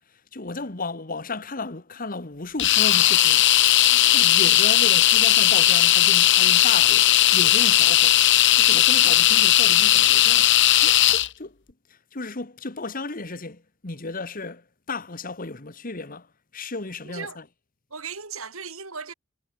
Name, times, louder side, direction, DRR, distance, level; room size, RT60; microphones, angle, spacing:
voice 1, 0.3-3.4 4.1-8.2 8.5-10.5 10.8-11.6 11.9-16.3 16.5-17.4, left 3 dB, 40° left, 1.6 m, -34 dB
sound 1, 2.6-11.3, left 13 dB, 55° left, 1.1 m, -17 dB
voice 2, 3.9-4.2 17.0-17.4 17.9-19.1, right 5 dB, 75° right, 5.8 m, -37 dB
head